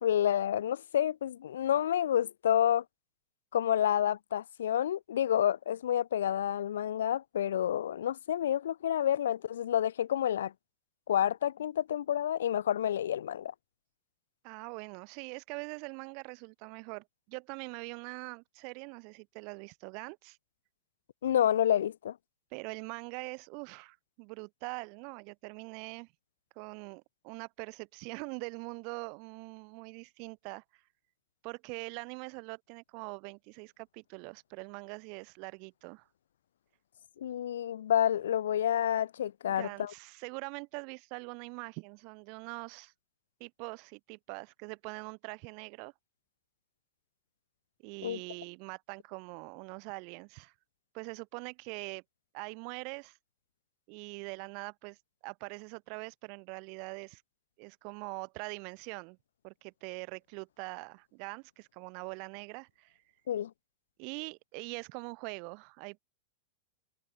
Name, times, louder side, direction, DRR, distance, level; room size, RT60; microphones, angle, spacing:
voice 1, 0.0-2.8 3.5-10.5 11.1-13.5 21.2-22.2 37.2-39.9 48.0-48.2 63.3-63.5, left 10 dB, 70° left, 3.0 m, -29 dB
voice 2, 14.4-20.4 22.5-26.1 26.5-30.8 31.4-36.1 39.5-42.9 43.4-45.9 47.8-50.5 50.9-52.0 52.3-53.2 53.9-55.0 55.2-57.2 57.6-59.2 59.4-63.0 64.0-66.0, right 37 dB, 50° right, 3.0 m, -43 dB
figure-of-eight pair, 95°, 0 cm